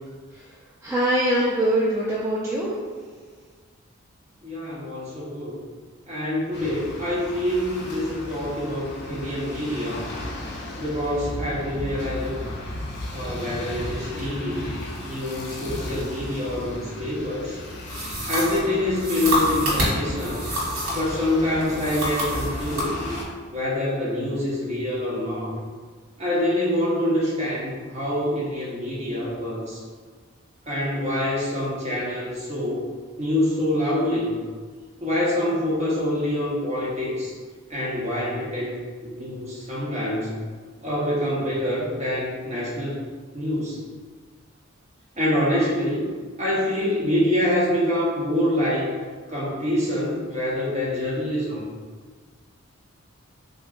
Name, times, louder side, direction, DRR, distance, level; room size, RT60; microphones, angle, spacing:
voice 1, 0.8-2.8, right 1 dB, 15° right, -8 dB, 0.3 m, -23 dB
voice 2, 4.4-5.6 6.1-10.0 10.8-12.4 13.1-14.7 15.0-17.6 18.3-20.4 20.9-22.9 23.5-25.5 26.2-29.8 30.7-32.8 33.2-34.3 35.0-37.3 37.7-38.9 39.1-40.3 40.8-43.0 43.3-43.8 45.2-46.1 46.4-48.9 49.3-51.7, left 1 dB, 35° right, -7 dB, 0.9 m, -26 dB
sound 1, 6.5-23.2, left 1 dB, 55° left, 0.6 m, -35 dB
sound 2, 17.9-21.2 21.6-22.9, equal, 85° right, 1.2 m, -27 dB
3.7 x 2.6 x 2.4 m, 1.5 s
head